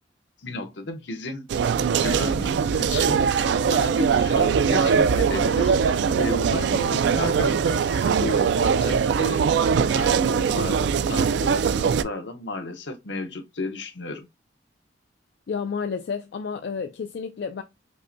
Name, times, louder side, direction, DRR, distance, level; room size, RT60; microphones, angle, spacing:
voice 1, 0.4-1.5 2.0-14.3, left 2 dB, 85° left, 0.8 m, -33 dB
sound 1, 1.5-12.0, right 6 dB, 75° right, 0.3 m, -21 dB
voice 2, 15.5-17.6, left 5 dB, 65° left, 0.3 m, -30 dB
5.3 x 2.2 x 2.5 m
head